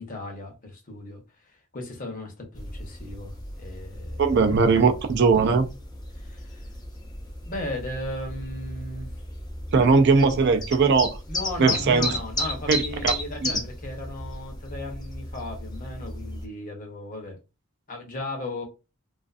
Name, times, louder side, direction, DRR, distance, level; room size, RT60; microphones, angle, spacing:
voice 1, 0.0-4.2 6.2-6.6 7.4-9.1 11.3-17.4 17.9-18.6, left 1 dB, 40° left, 0.7 m, -36 dB
sound 1, 2.5-16.4, left 1 dB, 20° left, 0.4 m, -34 dB
voice 2, 4.2-5.7 9.7-11.2 11.6-12.1 12.7-13.1 13.4-13.5, right 4 dB, 50° right, 0.4 m, -19 dB
2.4 x 2.4 x 2.4 m
head